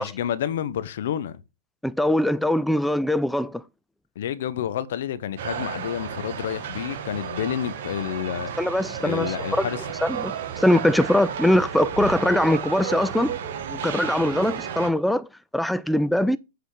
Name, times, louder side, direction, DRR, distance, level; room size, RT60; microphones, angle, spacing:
voice 1, 0.0-1.4 4.2-8.5 9.0-9.8, left 10 dB, 65° left, 1.0 m, -29 dB
voice 2, 1.8-3.6 8.6-9.7 10.0-13.4 13.7-15.3 15.5-16.4, left 1 dB, ahead, 0.3 m, -22 dB
sound 1, 5.4-14.9, right 8 dB, 60° right, 1.6 m, -32 dB
8.1 x 4.1 x 4.9 m
hypercardioid pair, 115°, 0 cm